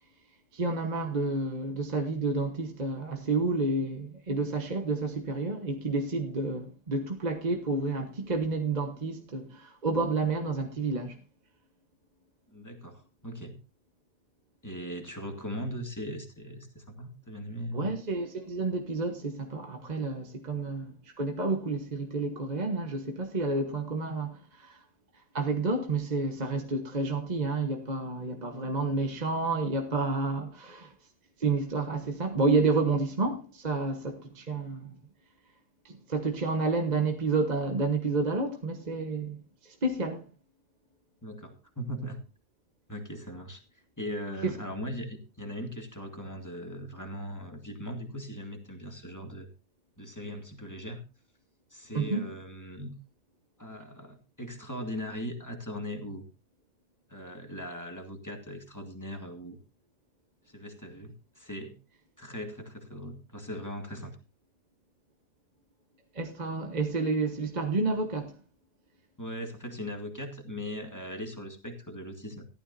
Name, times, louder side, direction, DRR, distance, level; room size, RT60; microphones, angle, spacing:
voice 1, 0.5-11.2 17.7-24.8 25.3-30.9 31.4-34.9 35.8-39.4 39.6-40.2 44.4-44.5 51.9-52.3 66.1-68.3, right 3 dB, 30° right, 1.1 m, -30 dB
voice 2, 12.5-13.6 14.6-17.9 41.2-42.2 42.9-49.5 50.0-51.0 51.7-52.9 53.6-56.2 57.1-59.6 60.5-61.8 62.2-64.2 69.2-72.4, equal, 10° left, 1.7 m, -39 dB
14.5 x 12.0 x 2.7 m
omnidirectional pair, 1.7 m